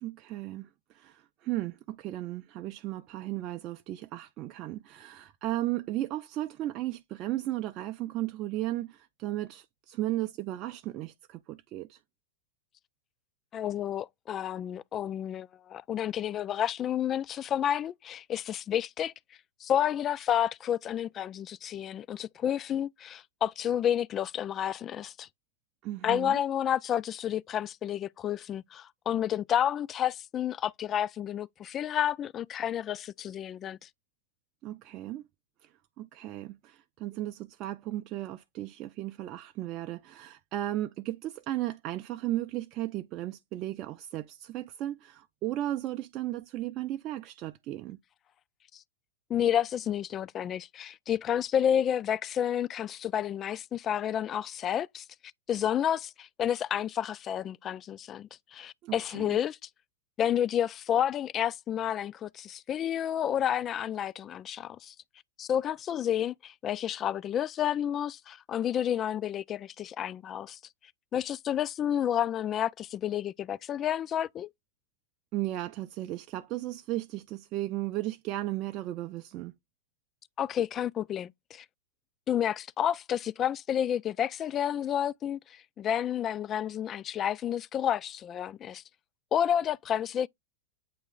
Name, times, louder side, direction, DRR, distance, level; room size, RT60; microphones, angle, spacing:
voice 1, 0.0-12.0 25.8-26.4 34.6-35.3 35.6-48.0 58.8-59.4 75.3-79.5, right 15 dB, 35° right, 0.5 m, -35 dB
voice 2, 13.5-19.1 19.6-25.3 26.0-33.9 48.7-48.8 49.3-55.0 55.5-59.6 60.2-64.9 65.4-70.6 71.1-74.5 80.4-81.6 82.3-88.8 89.3-90.3, left 10 dB, 30° left, 0.3 m, -30 dB
8.4 x 3.0 x 3.7 m
figure-of-eight pair, 95°, 0 cm